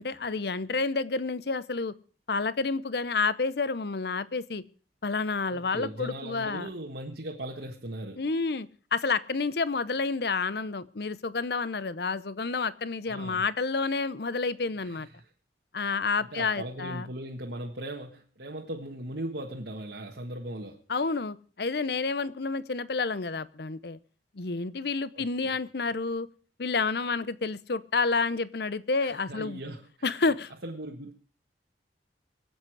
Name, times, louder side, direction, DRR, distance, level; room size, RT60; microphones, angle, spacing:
voice 1, 0.0-1.9 2.3-4.6 5.0-6.7 8.2-15.1 15.7-17.1 20.9-24.0 24.3-26.3 26.6-29.6 30.0-30.5, left 4 dB, 55° left, 0.7 m, -29 dB
voice 2, 5.5-8.3 13.1-13.4 14.8-15.3 16.2-20.8 25.1-25.5 29.0-30.1 30.6-31.1, right 1 dB, 65° right, 1.6 m, -39 dB
24.0 x 8.4 x 4.7 m
head